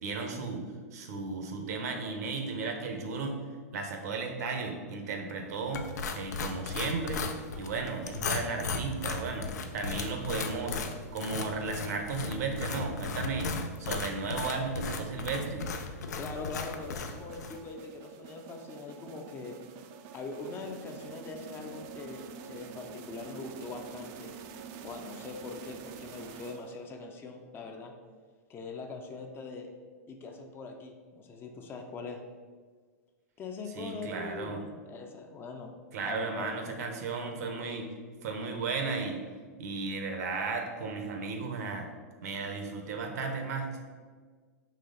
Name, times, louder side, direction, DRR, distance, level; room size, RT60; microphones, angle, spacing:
voice 1, 0.0-0.6 0.9-3.4 3.7-5.9 6.1-7.3 7.6-10.8 11.1-13.5 13.8-15.7 33.8-34.6 35.9-37.9 38.2-39.2 39.6-41.9 42.2-43.8, right 4 dB, 70° right, 4 dB, 0.8 m, -34 dB
sound 1, 5.7-17.6, left 4 dB, 80° left, 0.4 m, -36 dB
voice 2, 16.2-19.5 20.1-24.3 24.8-27.9 28.5-29.7 30.1-32.2 33.4-35.7 36.0-36.5, left 4 dB, 25° left, 4 dB, 0.5 m, -42 dB
sound 2, 16.3-27.0, right 7 dB, 45° right, 0.4 m, -47 dB
4.2 x 3.0 x 3.8 m, 1.5 s
hypercardioid pair, 115°, 9 cm